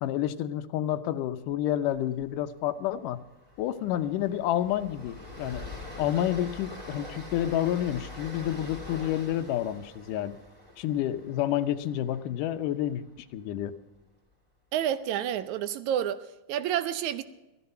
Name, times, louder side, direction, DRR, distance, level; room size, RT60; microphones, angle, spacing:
voice 1, 0.0-3.2 3.6-5.6 6.0-10.4 10.8-13.0 13.3-13.7, left 12 dB, 85° left, 2.4 m, -29 dB
Train, 1.9-2.2 2.5-2.7 3.0-13.2, left 2 dB, 10° right, 2.9 m, -44 dB
voice 2, 14.7-16.2 16.5-17.2, right 10 dB, 75° right, 2.0 m, -29 dB
15.0 x 14.0 x 5.6 m
omnidirectional pair, 3.7 m